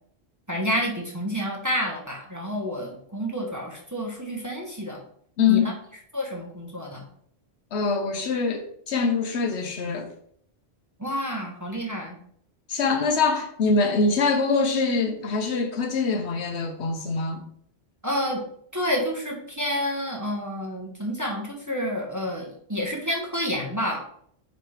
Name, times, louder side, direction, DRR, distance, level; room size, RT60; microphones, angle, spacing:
voice 1, 0.5-5.0 5.5-5.7 6.1-7.0 11.0-12.2 18.0-18.4 18.7-24.0, equal, 15° right, 1.0 m, -29 dB
voice 2, 5.4-5.7 7.7-10.1 12.7-17.4, left 4 dB, 85° left, 1.0 m, -24 dB
6.0 x 3.3 x 4.7 m
omnidirectional pair, 1.1 m